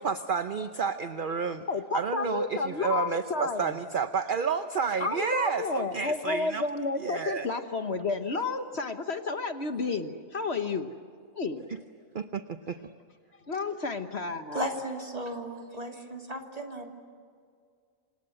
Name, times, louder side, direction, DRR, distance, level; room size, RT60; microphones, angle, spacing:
voice 1, 0.0-1.6 1.9-6.6 7.0-7.5 12.1-12.8, right 5 dB, 45° right, 9 dB, 0.9 m, -30 dB
voice 2, 1.7-3.8 5.0-10.9 11.4-11.6 13.5-14.7, left 4 dB, 50° left, 8 dB, 1.4 m, -31 dB
voice 3, 14.5-16.9, equal, 25° right, 2 dB, 3.0 m, -35 dB
28.0 x 26.5 x 7.8 m, 2.2 s
omnidirectional pair, 1.5 m